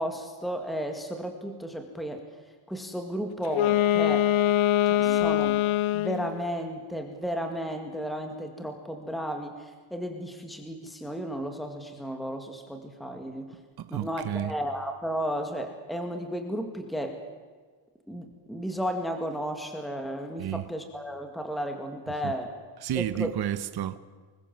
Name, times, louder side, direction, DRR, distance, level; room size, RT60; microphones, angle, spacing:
voice 1, 0.0-2.2 2.7-4.3 4.9-5.6 5.9-13.6 13.9-17.2 18.1-22.5 23.0-23.3, equal, ahead, 2.0 m, -33 dB
Wind instrument woodwind instrument, 3.4-6.4, left 12 dB, 75° left, 0.9 m, -23 dB
voice 2, 13.8-14.5 20.4-20.7 22.2-22.3 22.8-24.0, right 11 dB, 50° right, 1.1 m, -31 dB
26.0 x 21.5 x 7.6 m
cardioid pair, 170°, 48 cm